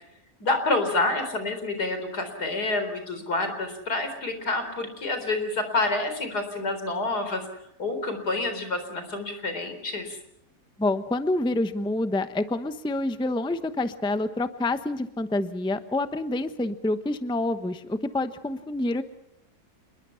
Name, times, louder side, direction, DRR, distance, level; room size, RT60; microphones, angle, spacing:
voice 1, 0.4-7.5 7.8-10.2, left 2 dB, 85° left, 7 dB, 4.7 m, -28 dB
voice 2, 10.8-19.0, left 2 dB, 5° left, 10 dB, 0.7 m, -27 dB
29.0 x 21.5 x 5.8 m, 0.79 s
omnidirectional pair, 1.7 m